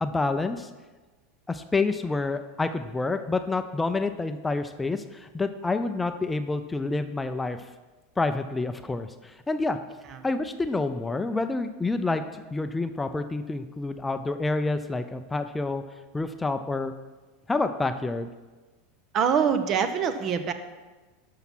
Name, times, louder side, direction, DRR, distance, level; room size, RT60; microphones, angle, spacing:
voice 1, 0.0-0.7 1.5-7.6 8.2-9.8 10.2-15.8 16.1-16.9 17.5-18.3, left 3 dB, 15° left, 9 dB, 0.6 m, -28 dB
voice 2, 19.1-20.5, right 7 dB, 40° right, 10 dB, 1.0 m, -24 dB
12.5 x 5.7 x 6.1 m, 1.3 s
hypercardioid pair, 85°, 0 cm